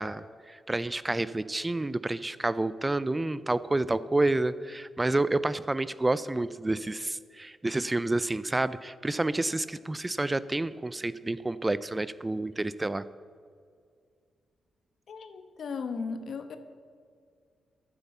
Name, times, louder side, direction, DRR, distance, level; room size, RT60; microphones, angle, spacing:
voice 1, 0.0-13.0, right 2 dB, 20° right, 16 dB, 0.4 m, -29 dB
voice 2, 15.1-16.6, left 5 dB, 65° left, 8 dB, 1.0 m, -36 dB
10.0 x 8.8 x 7.2 m, 2.2 s
supercardioid pair, 60°, 0 cm